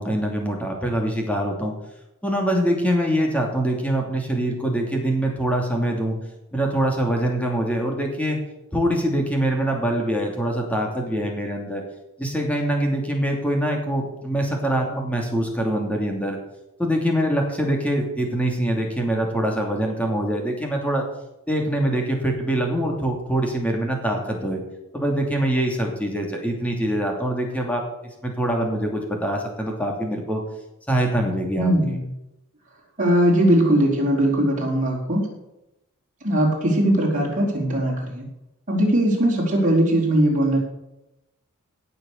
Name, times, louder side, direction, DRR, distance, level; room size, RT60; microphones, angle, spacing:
voice 1, 0.0-1.7 2.2-6.2 6.5-8.4 8.7-11.8 12.2-16.4 16.8-21.1 21.5-24.6 24.9-30.4 30.9-32.0, right 1 dB, 5° left, 1 dB, 2.9 m, -24 dB
voice 2, 31.6-32.0 33.0-35.3 36.2-38.2 38.7-40.6, right 1 dB, 35° right, -3 dB, 4.7 m, -20 dB
17.5 x 6.9 x 6.6 m, 0.91 s
head